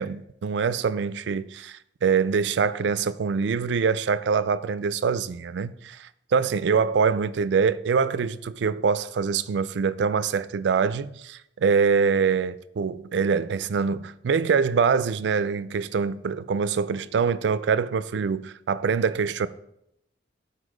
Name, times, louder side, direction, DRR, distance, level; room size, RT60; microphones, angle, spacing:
voice 1, 0.0-19.5, right 5 dB, 70° right, 0.4 m, -24 dB
8.3 x 4.2 x 4.9 m
head